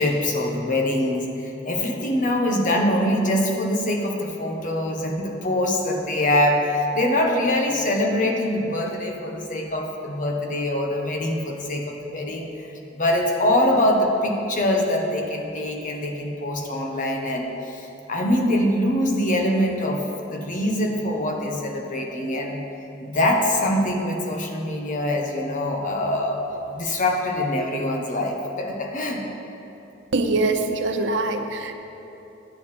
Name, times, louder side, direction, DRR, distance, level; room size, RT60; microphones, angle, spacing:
voice 1, 0.0-12.7 12.9-22.6 23.0-26.4 26.7-29.2, left 1 dB, 45° left, 1 dB, 1.1 m, -24 dB
voice 2, 30.1-31.7, right 2 dB, 70° right, 7 dB, 0.7 m, -23 dB
10.5 x 8.5 x 4.3 m, 3.0 s
head